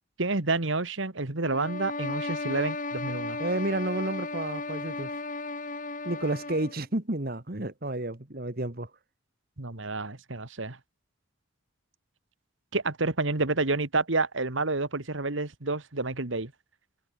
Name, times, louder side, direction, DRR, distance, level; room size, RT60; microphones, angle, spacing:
voice 1, 0.2-3.4 9.6-10.8 12.7-16.5, right 3 dB, 70° right, 1.9 m, -29 dB
sound 1, 1.4-6.8, left 2 dB, 40° left, 6.2 m, -35 dB
voice 2, 3.4-5.2 6.0-8.9, right 1 dB, 45° right, 1.8 m, -31 dB
head